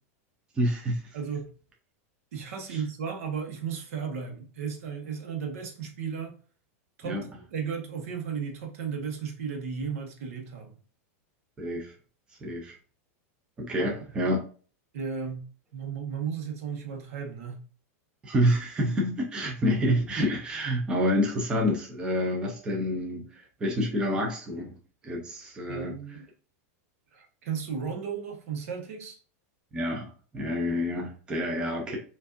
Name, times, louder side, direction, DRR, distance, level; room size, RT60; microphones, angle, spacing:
voice 1, 0.6-1.2 2.7-2.8 7.0-7.2 11.6-11.9 12.4-12.7 13.6-14.4 18.2-24.7 25.0-25.9 29.7-32.0, equal, 10° right, 0 dB, 0.6 m, -28 dB
voice 2, 1.1-1.5 2.3-6.3 7.0-10.8 13.8-14.1 14.9-17.6 25.7-26.2 27.1-29.2, right 6 dB, 65° right, 3 dB, 1.0 m, -35 dB
4.7 x 2.6 x 2.5 m, 0.39 s
supercardioid pair, 170°, 8 cm